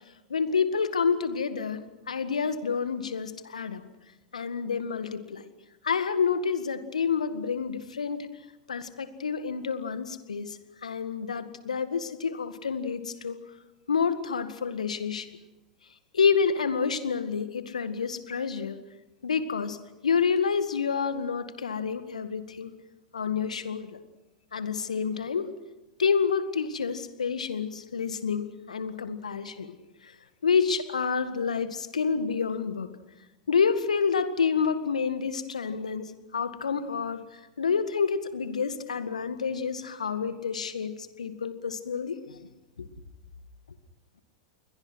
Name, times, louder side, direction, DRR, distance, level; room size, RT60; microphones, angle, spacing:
voice 1, 0.3-3.8 4.3-5.4 5.8-8.3 8.7-13.4 13.9-15.3 16.1-18.8 19.2-19.8 20.0-22.7 23.1-23.9 24.5-25.5 26.0-29.7 30.4-32.9 33.5-37.2 37.6-42.4 42.8-42.9, left 6 dB, 80° left, 11 dB, 1.9 m, -28 dB
29.5 x 22.5 x 6.3 m, 1.0 s
figure-of-eight pair, 90°, 4 cm